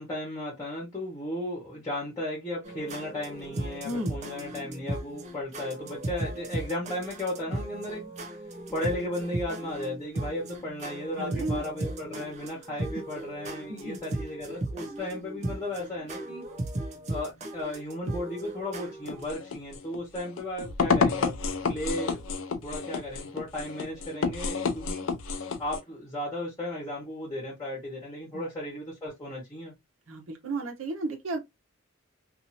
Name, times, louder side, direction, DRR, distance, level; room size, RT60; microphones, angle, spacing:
voice 1, 0.0-8.0 8.7-16.4 17.1-21.3 21.7-22.3 22.6-25.1 25.6-29.7, left 1 dB, 20° left, 1.2 m, -35 dB
sound 1, 2.6-19.2, right 1 dB, 35° right, 0.5 m, -36 dB
voice 2, 11.2-11.6 13.7-14.0 28.3-28.5 30.1-31.4, right 2 dB, 80° right, 0.9 m, -33 dB
sound 2, 19.1-25.8, left 4 dB, 75° left, 0.5 m, -30 dB
2.7 x 2.6 x 2.8 m
head